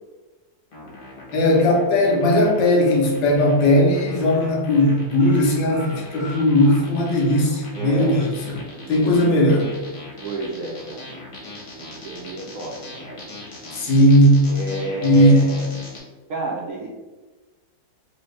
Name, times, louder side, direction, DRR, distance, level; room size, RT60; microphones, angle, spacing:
sound 1, 0.7-16.0, left 2 dB, 40° left, 0.9 m, -40 dB
voice 1, 1.3-8.6 8.9-9.7 13.8-14.4 15.0-15.5, left 1 dB, 90° left, 0 dB, 1.5 m, -17 dB
sound 2, 3.4-3.6 3.8-4.0 4.3-7.3 7.7-7.8 8.1-8.2, equal, 30° right, 1.3 m, -42 dB
voice 2, 7.7-8.3 8.8-9.5 10.2-11.2 11.7-13.3 14.5-15.7 16.3-16.9, right 2 dB, 75° right, -3 dB, 0.7 m, -31 dB
3.4 x 2.7 x 3.2 m, 1.2 s
omnidirectional pair, 1.9 m